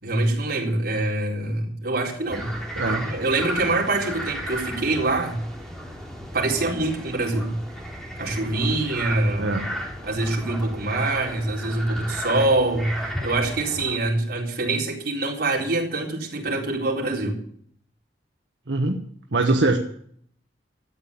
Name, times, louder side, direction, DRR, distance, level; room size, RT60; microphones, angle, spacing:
voice 1, 0.0-2.5 2.9-5.4 6.3-7.6 8.2-9.6 10.0-17.4, right 2 dB, 60° right, -2 dB, 4.2 m, -25 dB
sound 1, 2.3-14.0, equal, 5° left, 3.3 m, -34 dB
voice 2, 18.7-19.0 19.3-19.8, right 2 dB, 80° right, 2 dB, 1.4 m, -22 dB
13.5 x 9.0 x 8.6 m, 0.63 s
head